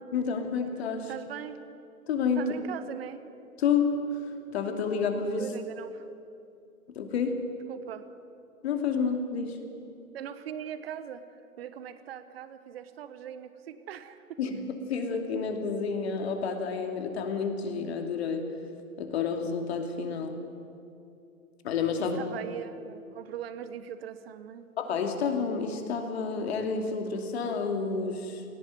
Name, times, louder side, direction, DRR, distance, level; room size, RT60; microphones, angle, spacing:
voice 1, 0.1-1.1 2.1-2.5 3.6-5.5 6.9-7.5 8.6-9.6 14.4-18.5 19.0-20.4 21.6-22.2 24.8-28.4, left 5 dB, 45° left, 5 dB, 2.8 m, -30 dB
voice 2, 1.1-1.6 2.4-3.2 5.4-6.1 7.7-8.1 10.1-11.2 11.6-14.4 22.0-24.7, right 9 dB, 45° right, 12 dB, 1.2 m, -40 dB
17.5 x 17.5 x 9.4 m, 2.6 s
hypercardioid pair, 140°, 43 cm